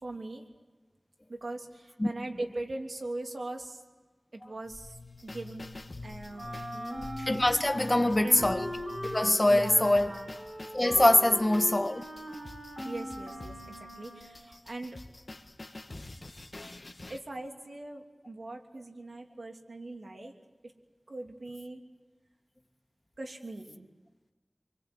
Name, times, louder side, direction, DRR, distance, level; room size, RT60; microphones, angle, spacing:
voice 1, 0.0-0.4 1.3-3.8 4.3-5.7 6.0-7.1 7.9-8.5 9.5-10.3 11.2-11.6 12.8-15.0 17.1-20.3 20.6-20.7 21.1-21.8 23.2-23.9, right 2 dB, 85° right, 3.0 m, -41 dB
sound 1, 4.6-10.0, left 3 dB, 85° left, 2.4 m, -45 dB
sound 2, 5.2-17.2, left 2 dB, 55° left, 2.0 m, -48 dB
Wind instrument woodwind instrument, 6.3-14.4, equal, 35° right, 6.9 m, -40 dB
voice 2, 7.2-8.7 9.0-10.2 10.7-12.0, left 1 dB, 30° left, 1.5 m, -24 dB
27.5 x 24.5 x 8.1 m
wide cardioid pair, 50°, 0 cm